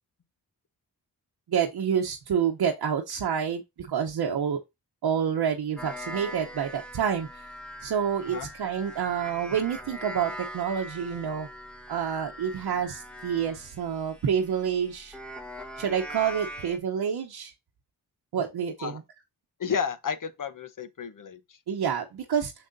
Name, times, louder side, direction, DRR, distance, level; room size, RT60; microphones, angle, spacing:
voice 1, 1.5-4.6 5.0-7.3 7.8-11.5 11.9-15.2 15.8-17.5 18.3-19.0 21.7-22.5, right 8 dB, 80° right, 0.9 m, -28 dB
sound 1, 5.8-16.8, equal, 5° left, 1.3 m, -42 dB
voice 2, 19.6-21.6, left 7 dB, 55° left, 0.9 m, -32 dB
6.3 x 6.2 x 2.6 m
cardioid pair, 65°, 38 cm